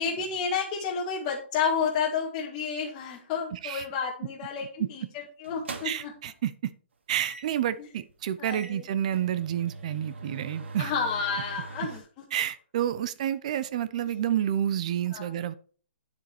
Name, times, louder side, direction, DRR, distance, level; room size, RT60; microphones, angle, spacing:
voice 1, 0.0-5.0 5.4-6.1 7.8-7.9 8.4-8.8 10.8-12.0 14.1-14.2 15.1-15.3, left 6 dB, 20° left, -3 dB, 1.5 m, -30 dB
voice 2, 3.5-3.9 4.8-4.9 5.8-6.7 7.1-10.9 12.3-15.5, right 10 dB, 35° right, 15 dB, 0.6 m, -29 dB
sound 1, 4.6-4.8 5.4-6.2 7.2-7.6 8.1-8.2 8.4-12.0, right 3 dB, 80° right, 2.2 m, -42 dB
9.5 x 7.3 x 4.4 m, 0.42 s
hypercardioid pair, 170°, 6 cm